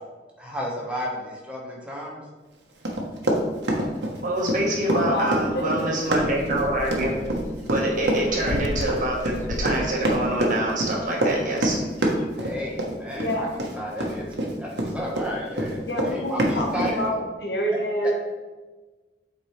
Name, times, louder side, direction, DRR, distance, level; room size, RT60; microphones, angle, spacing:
voice 1, 0.4-2.2 12.4-13.5 13.8-14.2 14.6-16.9 18.0-18.1, equal, 5° right, -3 dB, 1.3 m, -33 dB
Run, 2.8-15.3 15.6-16.9, right 1 dB, 75° right, 1.1 m, -26 dB
voice 2, 4.2-7.1 7.7-11.8, right 1 dB, 50° right, -2 dB, 1.4 m, -26 dB
voice 3, 4.9-5.9 13.2-13.7 15.8-17.1 17.4-18.1, equal, 70° left, 1 dB, 1.2 m, -27 dB
sound 1, 5.5-12.3, left 2 dB, 40° left, 0.3 m, -37 dB
7.7 x 4.6 x 3.3 m, 1.3 s
head